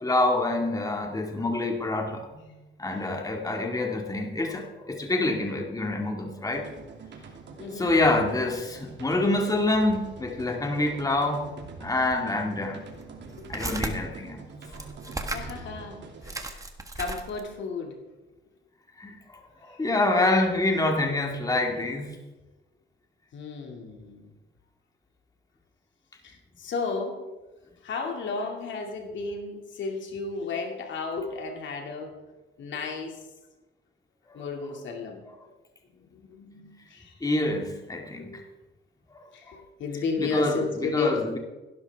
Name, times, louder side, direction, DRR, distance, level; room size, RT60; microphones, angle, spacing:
voice 1, 0.0-2.4 2.8-6.7 7.7-11.5 11.8-12.8 13.5-14.5 14.7-14.9 19.0-22.1 34.3-34.4 37.2-38.4 39.1-39.6 40.2-41.4, left 2 dB, 20° left, 2 dB, 2.1 m, -27 dB
sound 1, 6.5-16.3, right 4 dB, 65° right, 2.7 m, -45 dB
voice 2, 7.6-7.9 13.4-13.5 15.3-16.6 17.0-17.9 23.3-24.3 26.2-27.2 27.8-32.1 32.6-33.2 34.3-35.2 36.0-37.1 39.3-41.2, left 4 dB, 70° left, 2 dB, 2.5 m, -33 dB
sound 2, 12.1-12.2 12.9-13.9 14.7-15.6 15.9-16.0 16.2-17.5, right 2 dB, 15° right, 1.6 m, -35 dB
16.0 x 12.5 x 3.6 m, 1.1 s
cardioid pair, 90°, 20 cm